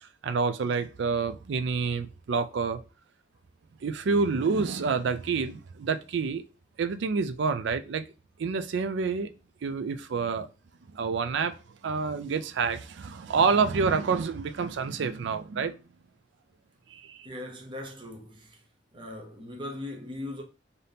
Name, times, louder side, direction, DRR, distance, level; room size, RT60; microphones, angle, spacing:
voice 1, 0.0-2.8 3.8-6.4 6.8-8.1 8.4-9.3 9.6-10.5 10.9-11.6 11.8-15.8 16.9-17.3, right 5 dB, 65° right, 0.4 m, -28 dB
voice 2, 17.2-18.6 18.9-20.4, left 1 dB, 25° right, 0.8 m, -39 dB
4.1 x 2.7 x 3.4 m
head